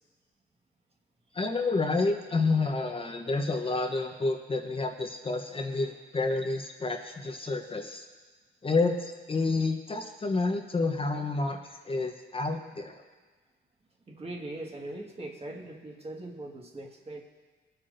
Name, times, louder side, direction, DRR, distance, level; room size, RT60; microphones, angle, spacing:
voice 1, 1.3-8.1 8.6-11.6 11.8-12.9, left 3 dB, 25° left, 3 dB, 0.9 m, -29 dB
voice 2, 14.1-17.2, right 2 dB, 30° right, 0 dB, 1.7 m, -41 dB
21.5 x 8.6 x 2.6 m, 1.3 s
cardioid pair, 90°, 20 cm